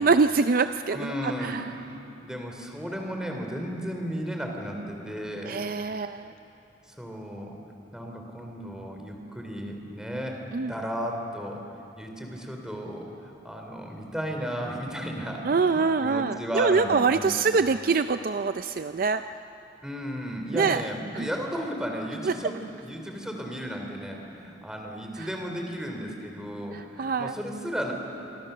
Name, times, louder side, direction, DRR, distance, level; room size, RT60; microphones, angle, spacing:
voice 1, 0.0-1.7 5.5-6.3 10.5-10.7 15.4-19.2 20.5-20.8 21.1-21.3 22.3-22.4 25.2-25.3 26.7-27.3, right 4 dB, 45° right, 10 dB, 0.4 m, -24 dB
voice 2, 0.9-1.6 2.2-5.6 6.9-7.5 7.9-11.6 12.0-17.4 19.8-22.6 22.8-27.9, equal, 5° right, 2 dB, 3.0 m, -34 dB
26.5 x 24.0 x 6.7 m, 3.0 s
head